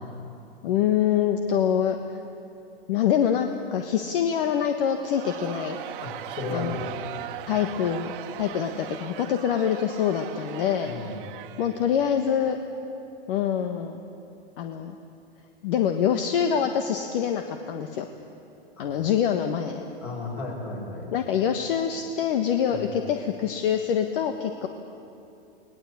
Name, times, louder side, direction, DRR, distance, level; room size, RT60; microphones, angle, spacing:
voice 1, 0.6-2.2 2.9-5.8 6.5-6.8 7.5-8.1 8.4-11.1 11.6-12.6 13.3-14.0 14.6-15.0 15.6-18.1 18.8-19.8 21.1-24.7, left 8 dB, 60° left, 6 dB, 1.4 m, -25 dB
Crowd, 5.0-12.3, right 12 dB, 55° right, 1.4 m, -39 dB
voice 2, 6.0-7.0 7.5-7.6 10.8-11.1 18.8-18.9 20.0-21.1 22.7-22.9, left 3 dB, 35° left, 0 dB, 7.0 m, -34 dB
21.0 x 19.5 x 8.5 m, 2.8 s
hypercardioid pair, 120°, 31 cm